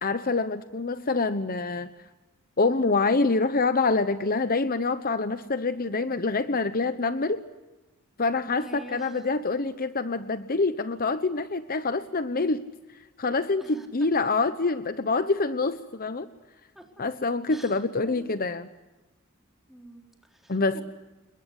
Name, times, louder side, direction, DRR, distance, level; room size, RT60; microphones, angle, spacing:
voice 1, 0.0-1.9 2.6-7.4 8.2-12.6 13.2-16.3 17.0-18.7 20.5-20.8, left 3 dB, 45° left, 12 dB, 0.9 m, -26 dB
voice 2, 8.6-9.3 13.6-14.1 16.7-16.9 17.5-18.4 19.7-20.8, right 1 dB, ahead, 2 dB, 4.0 m, -47 dB
29.0 x 21.5 x 8.1 m, 1.1 s
head